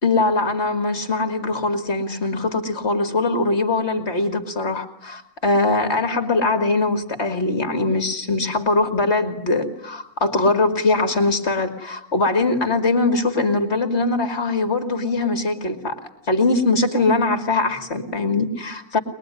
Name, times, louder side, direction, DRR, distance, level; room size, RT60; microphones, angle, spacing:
voice 1, 0.0-16.0 16.3-19.0, left 3 dB, 45° left, 7 dB, 2.6 m, -21 dB
23.0 x 21.5 x 9.8 m, 0.77 s
omnidirectional pair, 1.5 m